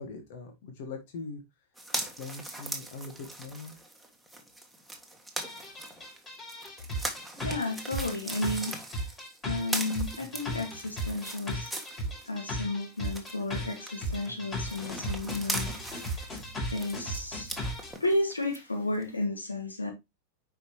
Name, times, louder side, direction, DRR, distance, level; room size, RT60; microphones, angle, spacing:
voice 1, 0.0-1.4 2.2-3.8, left 3 dB, 50° left, 1.6 m, -41 dB
sound 1, 1.8-12.5 12.8-18.6 19.0-19.1, right 1 dB, ahead, 1.7 m, -40 dB
sound 2, 5.4-17.9, equal, 20° left, 5.5 m, -36 dB
voice 2, 7.4-8.8 9.5-11.7 12.3-16.1 16.7-17.5 18.0-19.9, left 2 dB, 80° left, 2.1 m, -32 dB
9.9 x 5.0 x 3.1 m
figure-of-eight pair, 90°, 0 cm